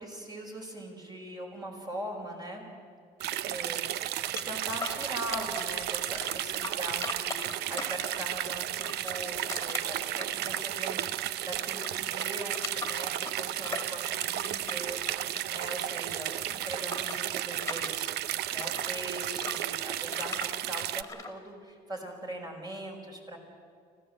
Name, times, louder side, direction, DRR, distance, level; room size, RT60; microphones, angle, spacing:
voice 1, 0.0-2.6 3.4-23.4, right 1 dB, 25° right, 1 dB, 5.1 m, -41 dB
sound 1, 3.2-21.0, right 13 dB, 75° right, 0.6 m, -33 dB
sound 2, 4.4-5.8 6.2-8.3 8.8-11.3 11.6-15.8 16.0-19.0 19.4-21.3, left 4 dB, 15° left, 2.2 m, -40 dB
26.0 x 16.0 x 7.8 m, 2.2 s
cardioid pair, 110°, 17 cm